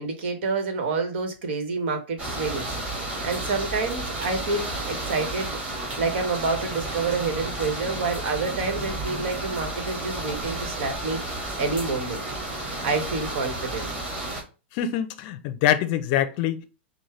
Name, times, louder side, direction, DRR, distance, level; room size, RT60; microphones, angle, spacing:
voice 1, 0.0-2.7 3.2-5.5 6.0-11.2 11.6-12.2 12.8-13.9, right 4 dB, 65° right, 1.3 m, -28 dB
sound 1, 2.2-14.4, right 2 dB, 20° right, 1.9 m, -32 dB
voice 2, 14.7-16.7, left 11 dB, 45° left, 0.5 m, -24 dB
5.4 x 2.2 x 3.2 m
hypercardioid pair, 135°, 6 cm